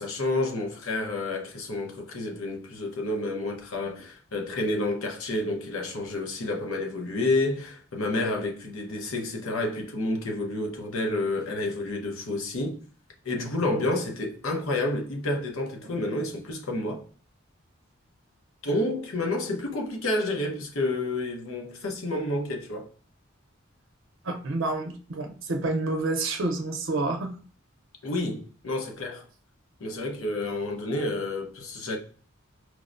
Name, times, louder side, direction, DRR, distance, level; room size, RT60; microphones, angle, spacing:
voice 1, 0.0-12.8 13.2-17.0 18.6-22.9 28.0-29.3 29.8-32.0, left 2 dB, 85° left, 0.8 m, -29 dB
voice 2, 24.2-27.3, right 2 dB, 70° right, 0.6 m, -29 dB
4.6 x 2.1 x 2.5 m
head